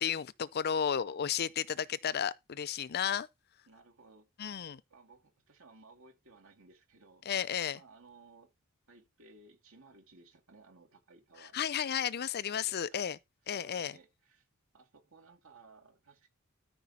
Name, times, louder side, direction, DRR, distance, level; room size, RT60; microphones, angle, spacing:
voice 1, 0.0-3.3 4.4-4.8 7.3-7.8 11.5-13.2 13.5-13.9, left 8 dB, 50° left, 0.5 m, -33 dB
voice 2, 0.7-1.4 3.0-3.2 3.7-4.3 4.9-7.2 7.7-8.5 8.9-11.7 12.5-13.1 13.5-14.5 14.7-16.3, right 3 dB, 65° right, 2.6 m, -59 dB
13.5 x 4.9 x 4.2 m
head